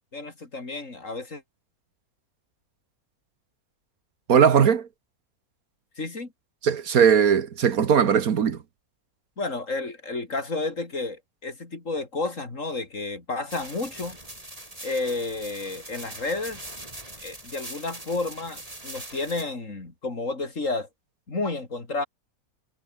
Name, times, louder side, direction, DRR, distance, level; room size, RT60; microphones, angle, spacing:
voice 1, 0.1-1.4 6.0-6.3 9.4-14.2 14.8-16.6 17.2-20.9 21.3-22.0, left 3 dB, 55° left, 3.9 m, -31 dB
voice 2, 4.3-4.9 6.6-8.6, right 7 dB, 70° right, 1.7 m, -19 dB
sound 1, 13.5-19.4, right 1 dB, 25° right, 4.6 m, -42 dB
omnidirectional pair, 1.6 m